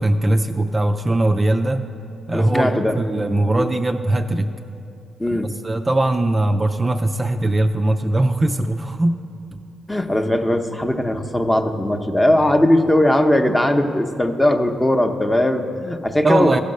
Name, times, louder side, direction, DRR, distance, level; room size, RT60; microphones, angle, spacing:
voice 1, 0.0-1.8 2.3-4.5 5.3-9.2 9.5-9.6 16.2-16.6, right 1 dB, 25° right, 6 dB, 0.4 m, -20 dB
voice 2, 2.3-2.9 3.6-3.7 5.2-5.5 9.9-16.6, left 1 dB, 15° left, 5 dB, 0.7 m, -19 dB
15.0 x 5.1 x 6.4 m, 2.7 s
cardioid pair, 70°, 0 cm